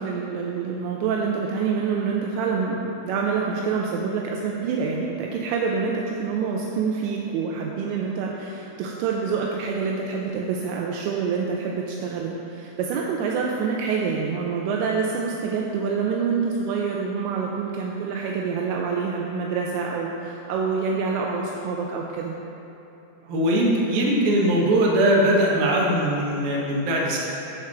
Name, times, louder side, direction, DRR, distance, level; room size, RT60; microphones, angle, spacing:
voice 1, 0.0-22.4, right 5 dB, 85° right, -1 dB, 2.8 m, -26 dB
voice 2, 23.3-27.2, right 1 dB, 65° right, -3 dB, 2.7 m, -20 dB
11.0 x 4.7 x 6.1 m, 3.0 s
omnidirectional pair, 5.3 m